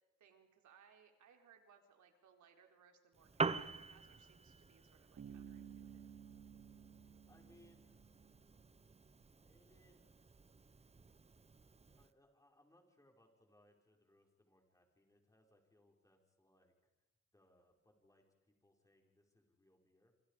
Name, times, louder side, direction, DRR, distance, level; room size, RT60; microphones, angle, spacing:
voice 1, 0.2-6.1, right 7 dB, 70° right, 4 dB, 4.3 m, -67 dB
Piano, 3.1-12.1, right 4 dB, 20° right, 1.0 m, -46 dB
Bass guitar, 5.2-8.8, right 8 dB, 50° right, 3.4 m, -55 dB
voice 2, 7.3-7.9 9.4-10.2 11.9-16.9 17.3-20.1, left 1 dB, 10° left, 1 dB, 5.8 m, -71 dB
28.5 x 27.0 x 5.2 m, 1.1 s
cardioid pair, 90°, 30 cm